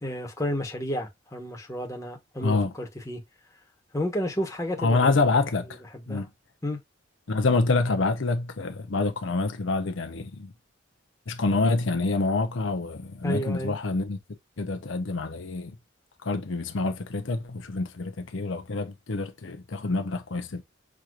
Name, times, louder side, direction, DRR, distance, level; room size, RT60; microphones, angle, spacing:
voice 1, 0.0-3.2 3.9-5.2 5.9-6.3 6.6-6.8 13.2-13.8, equal, 15° left, 1.1 m, -31 dB
voice 2, 2.4-2.7 4.8-5.8 6.1-6.3 7.3-10.5 11.3-14.2 14.6-15.8 16.2-20.6, left 3 dB, 70° left, 0.7 m, -26 dB
6.2 x 3.0 x 2.5 m
head